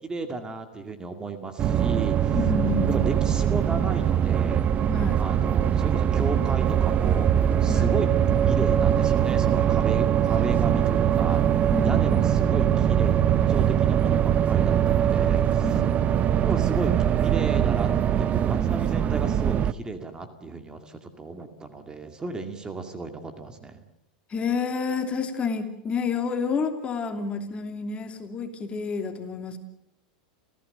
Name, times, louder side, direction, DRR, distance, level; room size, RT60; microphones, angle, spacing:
voice 1, 0.0-2.4 2.9-4.7 5.2-7.3 7.6-8.1 8.4-15.8 16.5-17.9 18.2-23.8, right 3 dB, 15° right, 6 dB, 2.2 m, -34 dB
sound 1, 1.6-19.7, right 9 dB, 35° right, 0.8 m, -22 dB
voice 2, 2.3-3.1 4.9-5.2 7.7-7.9 11.7-12.2 15.6-16.0 24.3-29.6, left 5 dB, 25° left, 5 dB, 2.9 m, -29 dB
29.0 x 15.5 x 6.7 m, 0.83 s
hypercardioid pair, 105°, 4 cm